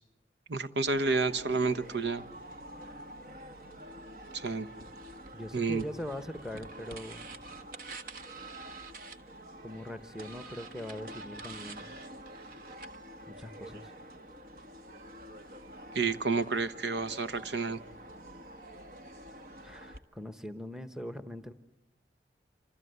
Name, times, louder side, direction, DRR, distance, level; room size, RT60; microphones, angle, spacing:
voice 1, 0.5-2.2 4.3-4.7 5.5-5.8 15.9-17.8, right 4 dB, 80° right, 11 dB, 1.1 m, -30 dB
sound 1, 0.9-20.0, right 1 dB, 50° right, 1.4 m, -47 dB
voice 2, 5.3-7.3 9.6-11.9 13.3-13.9 19.6-21.5, equal, 5° right, 10 dB, 1.1 m, -41 dB
27.5 x 26.5 x 8.1 m, 0.86 s
head